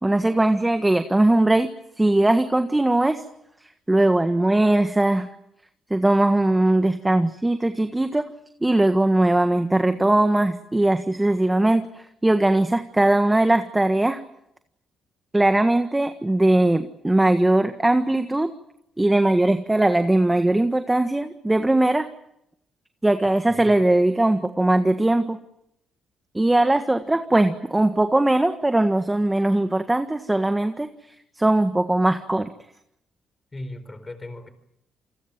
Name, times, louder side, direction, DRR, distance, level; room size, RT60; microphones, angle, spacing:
voice 1, 0.0-1.7 2.0-3.2 3.9-5.3 5.9-8.3 8.6-11.9 12.2-14.2 15.3-18.5 19.0-22.1 23.0-25.4 26.3-30.9 31.4-32.5, right 1 dB, 10° right, 1.5 m, -20 dB
voice 2, 23.5-23.8 33.5-34.5, left 1 dB, 20° left, 4.3 m, -37 dB
28.5 x 22.0 x 7.5 m
cardioid pair, 90°, 0 cm